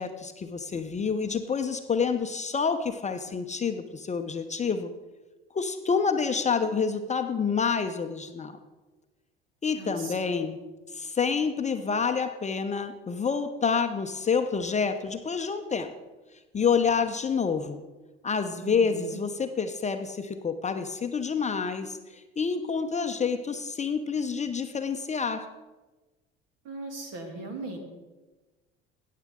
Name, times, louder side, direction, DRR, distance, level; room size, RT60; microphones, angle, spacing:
voice 1, 0.0-4.9 5.5-8.6 9.6-10.6 10.9-15.9 16.5-17.8 18.2-25.5, left 5 dB, 20° left, 7 dB, 0.7 m, -28 dB
voice 2, 9.8-10.4 18.6-19.2 26.6-27.8, right 2 dB, 55° right, 4 dB, 2.4 m, -39 dB
17.0 x 7.4 x 3.7 m, 1.2 s
figure-of-eight pair, 60°, 31 cm